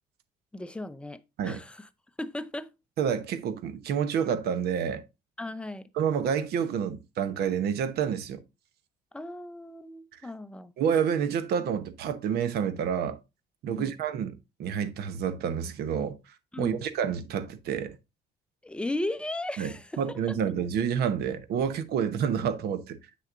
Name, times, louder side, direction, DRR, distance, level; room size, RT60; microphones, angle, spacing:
voice 1, 0.5-1.9 2.2-2.7 5.4-5.9 9.1-10.7 13.7-13.9 16.5-16.8 18.6-20.0 20.3-20.4, left 1 dB, 5° left, 0.5 m, -36 dB
voice 2, 3.0-5.0 6.0-8.4 10.8-13.2 13.6-16.2 16.6-18.0 19.6-23.0, right 8 dB, 70° right, 0.9 m, -29 dB
7.7 x 6.3 x 2.4 m
cardioid pair, 110°, 17 cm